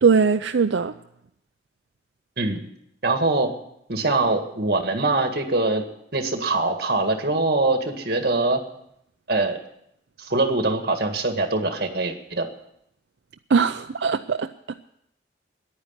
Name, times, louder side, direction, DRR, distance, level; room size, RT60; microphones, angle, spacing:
voice 1, 0.0-0.9 13.5-14.5, right 5 dB, 85° right, 7 dB, 0.5 m, -20 dB
voice 2, 3.0-3.5 3.9-5.8 6.1-8.6 9.3-9.6 10.2-12.5, right 2 dB, 55° right, 6 dB, 1.8 m, -23 dB
10.5 x 9.8 x 9.6 m, 0.77 s
head